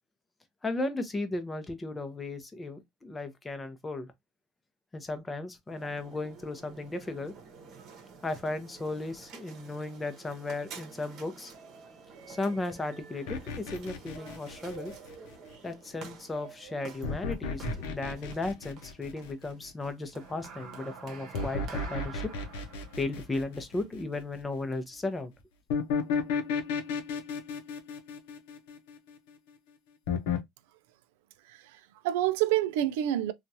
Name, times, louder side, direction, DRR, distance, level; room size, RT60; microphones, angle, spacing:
voice 1, 0.6-4.1 4.9-7.3 8.2-11.5 12.3-14.9 15.6-22.3 23.0-25.3, left 2 dB, 15° left, 0.7 m, -35 dB
sound 1, 5.7-24.8, right 5 dB, 50° right, 0.9 m, -48 dB
sound 2, 13.3-15.5 17.0-19.7 21.3-24.2 25.7-29.1 30.1-30.4, left 5 dB, 85° left, 0.6 m, -33 dB
voice 2, 31.4-33.3, right 13 dB, 85° right, 0.4 m, -28 dB
2.9 x 2.4 x 2.7 m
supercardioid pair, 115°, 0 cm